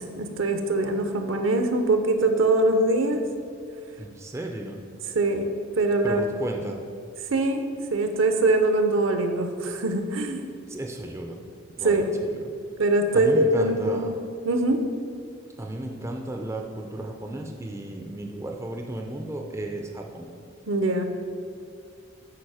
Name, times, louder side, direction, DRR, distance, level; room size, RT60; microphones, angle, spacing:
voice 1, 0.0-3.2 5.1-6.2 7.3-10.5 11.8-12.1 12.3-12.4 12.8-14.2 14.4-14.9 20.7-21.0, right 2 dB, 65° right, 6 dB, 0.7 m, -23 dB
voice 2, 4.0-4.8 6.0-6.8 10.7-11.4 11.8-12.5 13.1-14.1 15.6-20.3, right 1 dB, 15° right, 2 dB, 0.5 m, -34 dB
8.7 x 5.0 x 4.8 m, 2.3 s
head